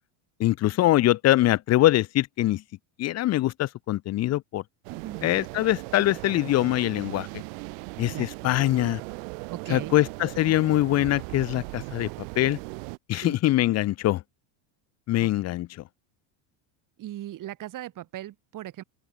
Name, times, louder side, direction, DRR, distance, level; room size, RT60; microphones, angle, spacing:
voice 1, 0.4-2.6 3.0-4.6 5.2-7.3 8.0-9.0 9.7-12.1 12.4-12.6 13.1-14.2 15.1-15.7, left 15 dB, 30° left, 0.7 m, -23 dB
sound 1, 4.8-13.0, right 35 dB, 75° right, 6.5 m, -38 dB
voice 2, 4.9-5.2 8.1-8.3 9.5-9.9 13.1-13.4 15.2-15.3 17.0-18.8, right 13 dB, 40° right, 6.3 m, -38 dB
open air
cardioid pair, 155°, 49 cm